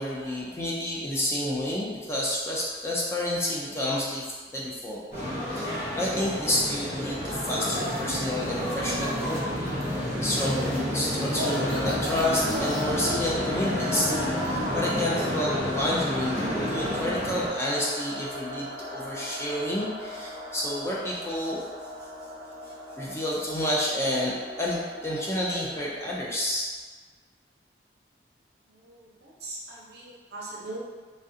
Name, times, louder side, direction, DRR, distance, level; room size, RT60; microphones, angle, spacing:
voice 1, 0.0-5.0 5.5-9.5 9.9-21.6 22.6-24.3 24.6-26.7, left 1 dB, 15° left, -5 dB, 0.3 m, -30 dB
sound 1, 5.1-17.5, equal, 55° left, 1.3 m, -30 dB
sound 2, 7.6-12.9, left 1 dB, 35° left, 1.3 m, -43 dB
sound 3, 11.5-26.2, left 1 dB, 85° left, 1.1 m, -37 dB
voice 2, 28.7-30.8, right 2 dB, 60° right, -5 dB, 0.7 m, -41 dB
3.1 x 2.4 x 2.7 m, 1.4 s
head